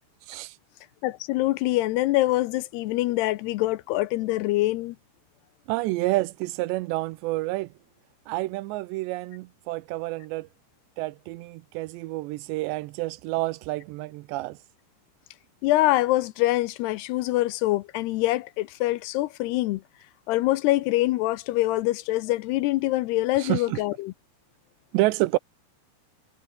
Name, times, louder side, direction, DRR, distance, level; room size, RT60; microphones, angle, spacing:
voice 1, 1.0-5.0 15.6-19.8 20.3-24.1, left 17 dB, 80° left, 2.6 m, -24 dB
voice 2, 5.7-7.7 8.3-10.5 11.0-14.6 23.4-23.8 24.9-25.4, right 19 dB, 85° right, 2.9 m, -28 dB
omnidirectional pair, 5.1 m